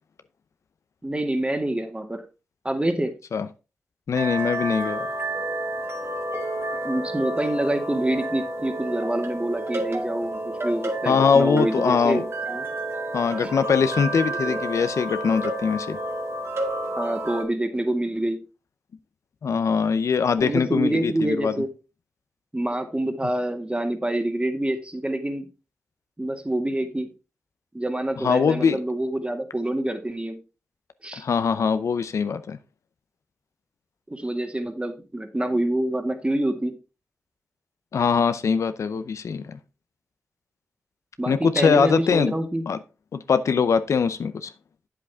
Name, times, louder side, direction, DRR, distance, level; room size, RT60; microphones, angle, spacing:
voice 1, 1.0-2.2 2.6-3.1 6.8-12.7 13.4-13.5 14.2-14.6 17.0-18.4 20.4-21.7 22.5-25.5 26.2-27.1 27.7-30.4 31.0-31.2 34.1-36.8 41.2-42.7, right 1 dB, 20° right, 1.9 m, -26 dB
voice 2, 4.1-5.1 11.1-12.2 13.1-16.0 19.4-21.5 28.2-28.8 31.2-32.6 37.9-39.6 41.3-42.3 42.7-42.8 43.1-44.5, left 6 dB, 80° left, 0.6 m, -22 dB
sound 1, 4.1-17.4, right 1 dB, 55° right, 2.0 m, -30 dB
8.4 x 7.6 x 3.5 m
cardioid pair, 45°, 5 cm